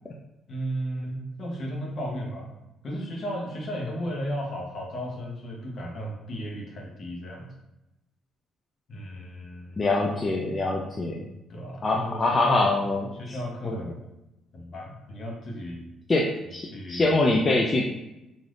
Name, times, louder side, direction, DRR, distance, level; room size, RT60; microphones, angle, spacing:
voice 1, 0.5-2.5 2.8-7.5 8.9-9.8 11.5-12.6 13.1-14.0 14.5-15.9 16.5-17.1, equal, 55° left, -2 dB, 0.9 m, -34 dB
voice 2, 9.8-11.3 11.8-13.1 13.6-13.8 16.1-16.3 16.5-16.6 16.9-17.8, left 2 dB, 35° left, -1 dB, 0.4 m, -23 dB
3.3 x 2.6 x 2.4 m, 0.93 s
supercardioid pair, 60°, 0 cm